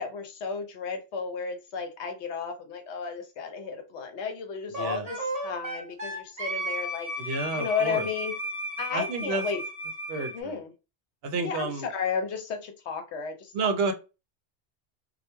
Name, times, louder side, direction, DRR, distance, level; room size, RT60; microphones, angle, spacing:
voice 1, 0.0-7.3 7.5-8.3 8.8-9.6 10.2-10.7 11.4-13.5, left 6 dB, 80° left, 6 dB, 0.9 m, -33 dB
Wind instrument woodwind instrument, 4.7-10.4, equal, 40° right, 0.8 m, -34 dB
voice 2, 7.2-8.1 8.9-9.4 10.1-10.5 11.2-11.9 13.5-13.9, right 3 dB, 65° right, 7 dB, 0.7 m, -30 dB
2.2 x 2.2 x 2.9 m, 0.29 s
omnidirectional pair, 1.2 m